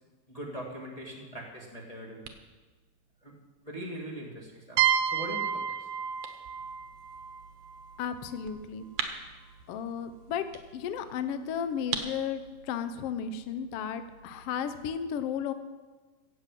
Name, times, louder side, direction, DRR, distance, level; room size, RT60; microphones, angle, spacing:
voice 1, 0.3-2.2 3.2-3.3 3.6-4.8 5.0-5.9, equal, 15° left, -3 dB, 1.6 m, -41 dB
sound 1, 1.4-14.9, right 7 dB, 60° right, 1.9 m, -45 dB
sound 2, 4.8-8.4, right 8 dB, 80° right, 2.3 m, -30 dB
voice 2, 8.0-8.8 9.7-10.5 10.7-15.5, left 8 dB, 80° left, 11 dB, 1.3 m, -34 dB
16.5 x 7.7 x 7.6 m, 1.3 s
omnidirectional pair, 3.8 m